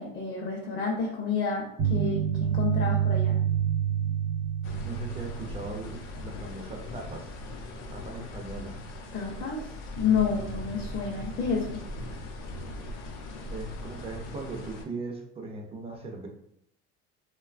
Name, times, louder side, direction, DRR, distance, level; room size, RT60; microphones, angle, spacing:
voice 1, 0.0-3.4 9.1-9.7 9.9-11.8, left 6 dB, 40° left, -2 dB, 0.6 m, -29 dB
sound 1, 1.8-6.0, right 9 dB, 80° right, 0.8 m, -27 dB
sound 2, 4.6-14.8, left 1 dB, 90° left, 0.6 m, -39 dB
voice 2, 4.8-7.3 7.8-8.8 13.5-16.3, right 3 dB, 20° right, 3 dB, 0.3 m, -39 dB
3.0 x 2.2 x 2.4 m, 0.73 s
cardioid pair, 135°, 29 cm